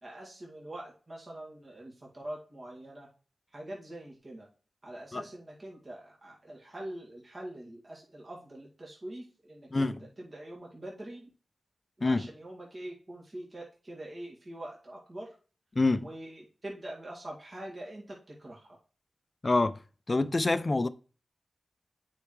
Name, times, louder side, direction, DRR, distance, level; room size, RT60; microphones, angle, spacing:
voice 1, 0.0-3.1 3.5-4.5 4.8-11.3 12.0-15.3 15.9-18.8, right 1 dB, 45° right, 2.1 m, -44 dB
voice 2, 15.8-16.1 19.4-19.8 20.1-20.9, left 2 dB, 40° left, 0.5 m, -26 dB
8.8 x 4.6 x 3.2 m
cardioid pair, 55°, 0 cm